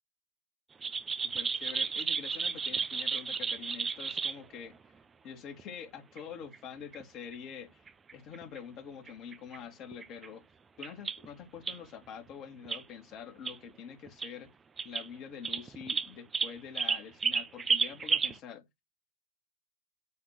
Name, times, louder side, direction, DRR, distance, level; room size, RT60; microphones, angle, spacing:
sound 1, 0.8-4.4 5.6-5.7 6.2-6.3 6.5-6.6 6.9-7.0 7.3-7.4 7.9-8.6 9.1-9.6 9.9-10.3 10.8-11.3 11.7-11.8 12.7-12.8 13.5-13.6 14.1-14.3 14.8-15.1 15.4-18.4, right 5 dB, 20° right, 1.0 m, -32 dB
voice 1, 1.2-4.8 5.2-7.8 8.1-10.4 10.8-14.5 14.8-18.6, left 7 dB, 40° left, 2.7 m, -46 dB
9.6 x 3.7 x 6.7 m
figure-of-eight pair, 90°, 0 cm